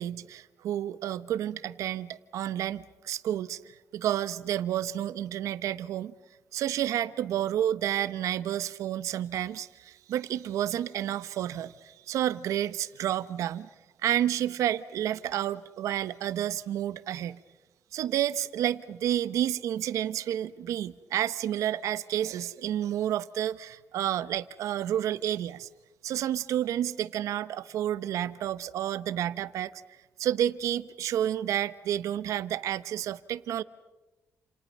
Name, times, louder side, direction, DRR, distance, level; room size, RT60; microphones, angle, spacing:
voice 1, 0.0-6.1 6.5-13.7 14.0-17.4 17.9-25.7 26.0-29.8 30.2-33.6, right 11 dB, 80° right, 1.0 m, -30 dB
30.0 x 28.5 x 5.5 m
cardioid pair, 110°, 5 cm